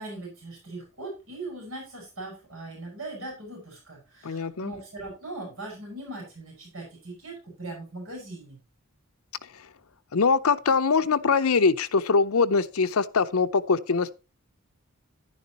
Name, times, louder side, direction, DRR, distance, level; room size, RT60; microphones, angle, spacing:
voice 1, 0.0-8.6, right 2 dB, 70° right, 6.3 m, -40 dB
voice 2, 4.2-4.7 10.1-14.1, left 4 dB, 85° left, 0.7 m, -23 dB
11.0 x 10.5 x 3.0 m
head